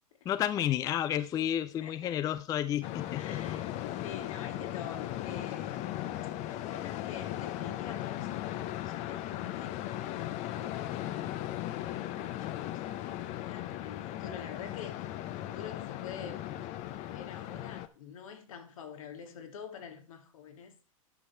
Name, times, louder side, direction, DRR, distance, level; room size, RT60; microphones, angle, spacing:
voice 1, 0.3-3.4, left 11 dB, 20° left, 0.3 m, -31 dB
voice 2, 1.8-2.2 3.1-3.7 4.0-6.1 6.4-11.3 11.8-16.6 16.9-20.7, left 7 dB, 75° left, 2.0 m, -47 dB
sound 1, 2.8-17.9, left 13 dB, 40° left, 0.7 m, -37 dB
10.5 x 5.5 x 4.3 m
hypercardioid pair, 115°, 18 cm